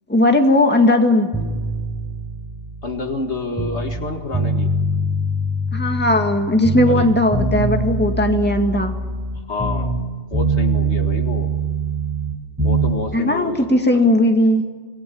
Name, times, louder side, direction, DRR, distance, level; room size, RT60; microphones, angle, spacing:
voice 1, 0.1-1.3 5.7-8.9 13.1-14.6, left 1 dB, 10° left, 4 dB, 1.9 m, -17 dB
sound 1, 1.3-4.0 4.3-6.4 6.6-10.1 10.3-13.0, right 2 dB, 15° right, 5.8 m, -23 dB
voice 2, 2.8-4.7 6.8-7.1 9.5-11.5 12.6-13.6, left 3 dB, 65° left, 5 dB, 2.1 m, -28 dB
26.5 x 19.0 x 7.1 m, 1.5 s
omnidirectional pair, 1.3 m